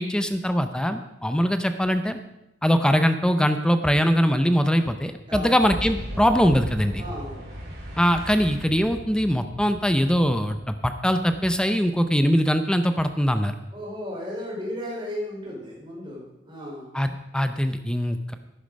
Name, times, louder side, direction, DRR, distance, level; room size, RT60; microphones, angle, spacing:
voice 1, 0.0-2.2 2.6-7.0 8.0-13.5 16.9-18.3, equal, 5° left, 9 dB, 0.6 m, -22 dB
Boom, 5.6-12.2, equal, 55° right, 3.7 m, -37 dB
voice 2, 7.0-7.3 13.7-16.9, left 1 dB, 25° right, -4 dB, 4.4 m, -34 dB
11.5 x 10.0 x 5.3 m, 0.88 s
head